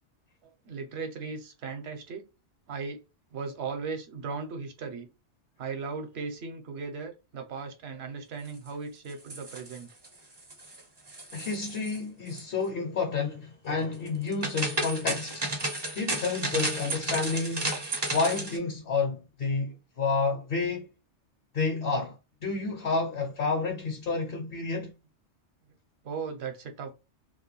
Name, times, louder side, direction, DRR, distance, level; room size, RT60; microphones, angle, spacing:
voice 1, 0.4-2.2 2.7-3.0 3.3-5.1 5.6-9.9 26.0-26.9, right 5 dB, 65° right, 0.9 m, -37 dB
sound 1, 9.1-10.1 10.4-10.8 11.1-12.0 12.3-12.4 14.1-18.6, right 2 dB, 30° right, 0.5 m, -33 dB
voice 2, 11.3-15.5 15.9-17.8 18.1-20.9 21.5-24.9, left 4 dB, 65° left, 0.7 m, -30 dB
2.3 x 2.2 x 3.0 m
omnidirectional pair, 1.2 m